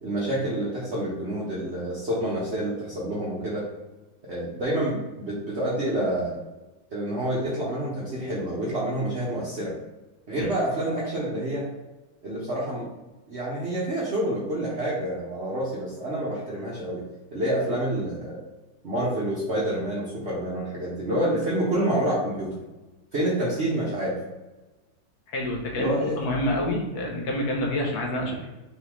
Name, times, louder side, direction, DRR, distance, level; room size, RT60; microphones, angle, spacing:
voice 1, 0.0-3.6 4.2-6.4 6.9-9.7 10.3-11.7 12.2-12.9 13.3-17.0 17.3-18.4 18.8-22.6 23.1-24.1 25.7-26.2, right 1 dB, 50° right, -6 dB, 0.8 m, -28 dB
voice 2, 25.3-28.5, left 1 dB, 60° left, -1 dB, 1.2 m, -28 dB
4.0 x 3.6 x 3.0 m, 1.1 s
omnidirectional pair, 2.3 m